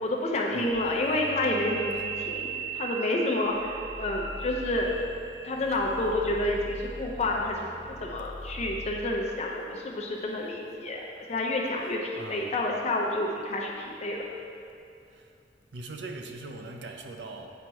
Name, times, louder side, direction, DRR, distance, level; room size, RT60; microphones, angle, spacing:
voice 1, 0.0-2.5 2.7-4.9 5.4-7.6 7.9-11.0 11.3-14.2, left 1 dB, 40° left, -1 dB, 0.5 m, -29 dB
sound 1, 0.7-9.3, right 3 dB, 10° left, 0.9 m, -39 dB
voice 2, 12.1-12.6 15.1-15.3 15.7-17.5, right 3 dB, 85° right, 4 dB, 0.5 m, -41 dB
8.1 x 4.5 x 3.0 m, 2.6 s
head